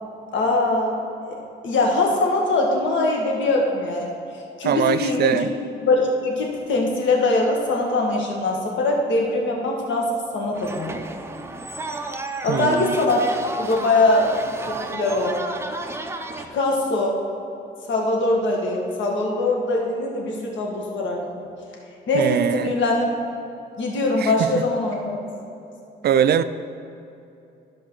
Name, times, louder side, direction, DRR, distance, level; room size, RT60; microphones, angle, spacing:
voice 1, 0.3-0.9 1.2-1.3 1.6-4.1 4.6-5.5 5.8-11.0 12.4-13.3 13.6-14.3 14.7-15.4 16.4-17.2 17.9-21.4 22.1-23.1 23.8-25.1, left 2 dB, 70° left, 0 dB, 1.8 m, -22 dB
voice 2, 4.6-5.5 12.5-12.9 22.1-22.7 24.2-24.7 26.0-26.4, right 9 dB, 55° right, 13 dB, 0.4 m, -22 dB
sound 1, 10.5-16.5, right 2 dB, 10° right, 0.7 m, -33 dB
12.0 x 4.9 x 6.1 m, 2.7 s
cardioid pair, 90°, 20 cm